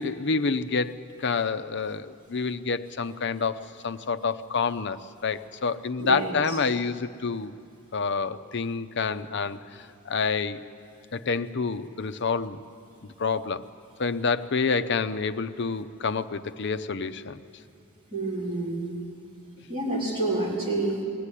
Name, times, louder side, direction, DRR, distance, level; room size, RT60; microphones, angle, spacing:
voice 1, 0.0-7.5 7.9-10.6 11.1-12.6 13.2-13.6 14.0-17.4, left 4 dB, 55° left, 10 dB, 0.7 m, -28 dB
voice 2, 6.0-6.3 18.1-18.9 19.7-21.0, right 2 dB, 25° right, -6 dB, 4.1 m, -28 dB
22.0 x 15.5 x 9.9 m, 2.5 s
head